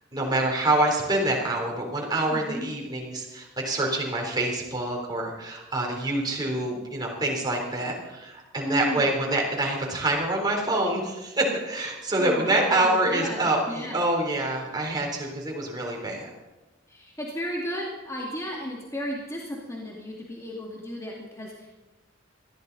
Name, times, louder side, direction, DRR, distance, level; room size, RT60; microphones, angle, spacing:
voice 1, 0.1-16.3, right 2 dB, 20° right, -1 dB, 3.7 m, -26 dB
voice 2, 2.3-2.7 8.6-9.2 12.2-14.0 16.9-21.7, equal, 15° left, -3 dB, 2.3 m, -34 dB
21.0 x 15.0 x 4.1 m, 1.1 s
head